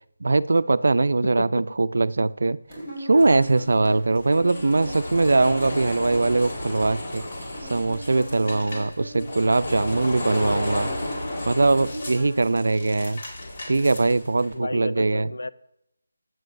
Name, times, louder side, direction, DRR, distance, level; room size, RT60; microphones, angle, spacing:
voice 1, 0.2-2.6 3.0-7.2 7.7-10.9 11.5-13.2 13.7-15.3, right 3 dB, 65° right, 17 dB, 0.3 m, -21 dB
sound 1, 2.7-5.9 6.1-12.8, equal, 15° left, 3.9 m, -39 dB
sound 2, 3.2-14.5, left 1 dB, 35° left, 1.8 m, -34 dB
voice 2, 14.5-15.5, left 2 dB, 85° left, 16 dB, 0.5 m, -32 dB
15.5 x 7.6 x 2.6 m, 0.80 s
figure-of-eight pair, 175°, 0 cm